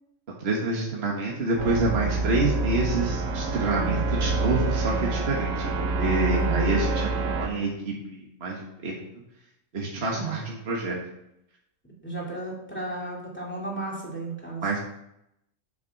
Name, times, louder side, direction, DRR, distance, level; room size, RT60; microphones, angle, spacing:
voice 1, 0.3-5.7 6.0-9.0 9.7-11.0 14.6-14.8, right 2 dB, 50° right, -2 dB, 1.7 m, -27 dB
sound 1, 1.6-7.5, right 3 dB, 75° right, 1.4 m, -27 dB
voice 2, 3.6-4.0 6.3-6.8 10.1-10.4 12.0-14.8, right 3 dB, 10° left, -4 dB, 2.6 m, -34 dB
7.3 x 7.0 x 5.8 m, 0.81 s
omnidirectional pair, 1.4 m